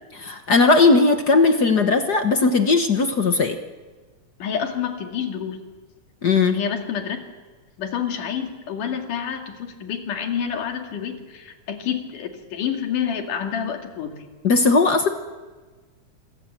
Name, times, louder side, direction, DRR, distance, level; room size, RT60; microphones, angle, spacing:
voice 1, 0.2-3.6 6.2-6.6 14.4-15.1, left 3 dB, 50° left, 7 dB, 1.2 m, -17 dB
voice 2, 4.4-5.6 6.5-7.2 7.8-14.2, left 8 dB, 85° left, 4 dB, 3.9 m, -28 dB
26.5 x 23.5 x 7.5 m, 1.3 s
omnidirectional pair, 3.6 m